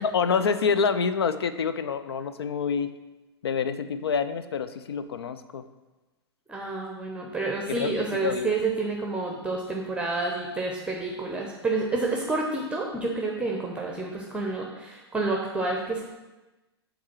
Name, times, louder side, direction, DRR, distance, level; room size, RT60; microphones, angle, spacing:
voice 1, 0.0-2.9 3.4-5.6 7.7-8.5, left 6 dB, 70° left, 12 dB, 0.5 m, -27 dB
voice 2, 6.5-16.0, right 3 dB, 10° right, 0 dB, 0.8 m, -29 dB
7.2 x 3.9 x 6.1 m, 1.1 s
figure-of-eight pair, 100°, 14 cm